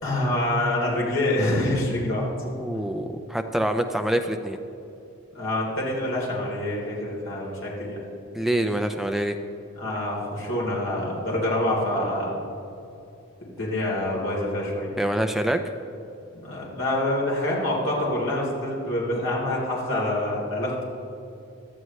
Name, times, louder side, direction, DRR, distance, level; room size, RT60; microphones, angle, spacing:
voice 1, 0.0-2.3 5.3-8.0 9.8-12.3 13.5-14.9 16.3-20.8, left 1 dB, 65° left, -4 dB, 3.5 m, -26 dB
voice 2, 2.4-4.6 8.3-9.4 15.0-15.6, right 1 dB, ahead, 6 dB, 0.5 m, -26 dB
17.5 x 12.5 x 3.2 m, 2.7 s
head